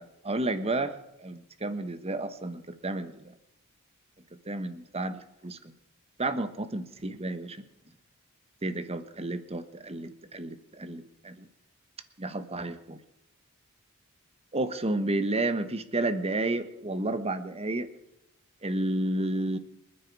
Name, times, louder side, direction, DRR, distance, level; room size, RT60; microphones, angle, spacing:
voice 1, 0.0-3.3 4.4-5.7 6.2-7.6 8.6-11.5 12.2-13.0 14.5-17.9 18.6-19.6, right 2 dB, 30° right, 11 dB, 1.2 m, -31 dB
28.0 x 9.9 x 4.8 m, 0.87 s
head